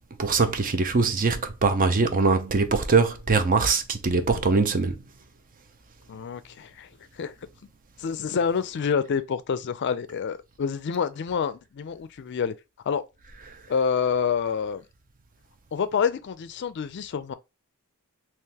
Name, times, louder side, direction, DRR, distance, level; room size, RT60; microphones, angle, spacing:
voice 1, 0.2-5.0, right 4 dB, 40° right, 0.6 m, -22 dB
voice 2, 6.1-6.9 7.2-7.3 8.0-12.5 12.9-13.0 13.7-14.8 15.7-17.3, left 6 dB, 55° left, 0.4 m, -27 dB
3.8 x 2.9 x 2.8 m
head